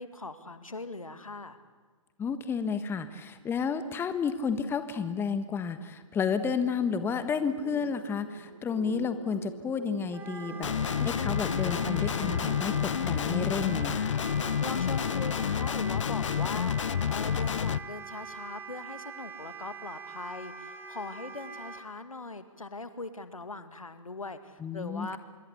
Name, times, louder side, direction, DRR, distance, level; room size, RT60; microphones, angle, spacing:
voice 1, 0.0-1.6 14.6-25.2, left 3 dB, 90° left, 10 dB, 2.2 m, -40 dB
voice 2, 2.2-14.2 24.6-25.2, left 6 dB, 15° left, 11 dB, 1.4 m, -31 dB
sound 1, 6.8-16.1, right 2 dB, 60° right, 6.0 m, -45 dB
Wind instrument woodwind instrument, 10.1-21.8, right 5 dB, 10° right, 2.5 m, -43 dB
Guitar, 10.6-17.8, left 8 dB, 65° left, 0.7 m, -29 dB
26.0 x 23.0 x 8.4 m, 1.4 s
figure-of-eight pair, 125°, 17 cm